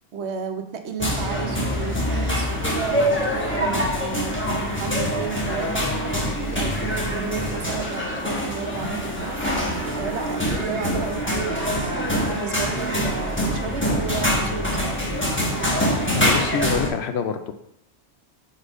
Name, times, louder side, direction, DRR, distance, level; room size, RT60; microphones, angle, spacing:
voice 1, 0.1-9.7 9.9-15.2, right 6 dB, 80° right, 6 dB, 1.0 m, -33 dB
sound 1, 1.0-16.9, equal, 10° left, 1.0 m, -24 dB
voice 2, 16.1-17.5, left 6 dB, 75° left, 8 dB, 0.8 m, -26 dB
4.9 x 4.1 x 5.3 m, 0.78 s
omnidirectional pair, 1.1 m